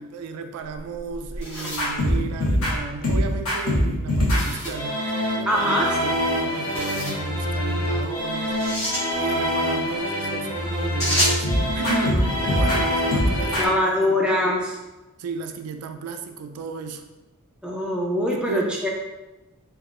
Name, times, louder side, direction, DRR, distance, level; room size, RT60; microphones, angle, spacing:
voice 1, 0.0-5.0 5.4-8.6 9.2-11.5 11.7-14.2 14.4-14.5 15.2-17.0 18.3-18.7, right 4 dB, 85° right, 11 dB, 0.3 m, -34 dB
sound 1, 0.7-2.9 4.3-4.9 6.5-7.2 8.4-9.1 11.0-11.5, equal, 15° left, 1.3 m, -28 dB
sound 2, 1.8-13.7, equal, 70° left, 0.9 m, -24 dB
voice 2, 5.5-5.9 12.0-12.2 12.7-12.8 13.6-14.8 17.6-18.9, left 1 dB, 5° right, -3 dB, 0.4 m, -23 dB
3.5 x 2.3 x 2.4 m, 1.1 s
head